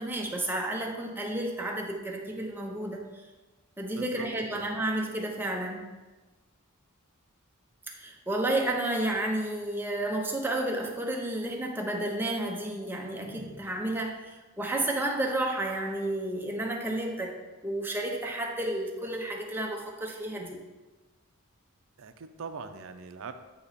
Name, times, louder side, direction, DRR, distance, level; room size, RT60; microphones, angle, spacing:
voice 1, 0.0-3.3 3.8-5.9 7.9-17.3 17.6-20.6, right 1 dB, 10° right, 0 dB, 0.7 m, -31 dB
voice 2, 4.0-4.3 4.5-4.6 22.0-23.3, right 5 dB, 65° right, 9 dB, 0.5 m, -41 dB
8.4 x 2.9 x 4.1 m, 1.2 s
head